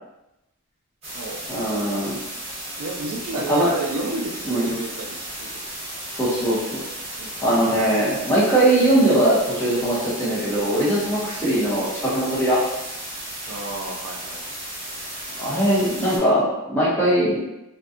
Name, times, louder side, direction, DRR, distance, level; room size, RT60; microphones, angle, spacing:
sound 1, 1.0-16.2, right 1 dB, 30° right, 1.0 m, -34 dB
voice 1, 1.5-2.2 3.5-3.7 4.5-4.7 6.2-6.8 7.4-12.6 15.4-17.4, right 1 dB, 10° left, -9 dB, 0.8 m, -20 dB
voice 2, 2.8-5.7 7.2-7.4 13.4-14.4, right 2 dB, 65° right, 0 dB, 0.4 m, -31 dB
2.6 x 2.2 x 2.4 m, 0.91 s
head